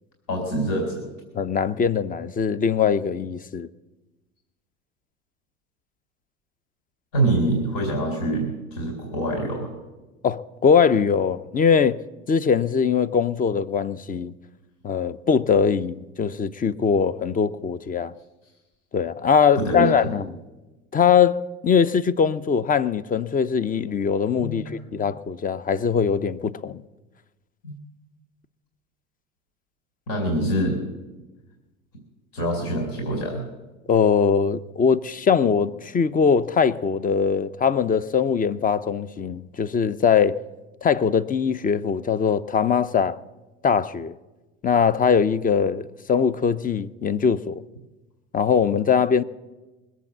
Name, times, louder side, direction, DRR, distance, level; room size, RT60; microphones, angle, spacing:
voice 1, 0.3-1.0 7.1-9.7 19.6-19.9 24.4-24.7 27.6-27.7 30.1-30.8 32.3-33.4, right 1 dB, 65° left, 4.1 m, -25 dB
voice 2, 1.3-3.7 10.2-12.0 12.3-14.3 14.8-18.1 18.9-20.3 20.9-24.6 24.9-26.8 33.9-40.4 40.8-43.2 43.6-44.1 44.6-47.6 48.3-49.2, left 6 dB, 25° left, 0.6 m, -21 dB
21.0 x 8.2 x 7.4 m
hypercardioid pair, 80°, 35 cm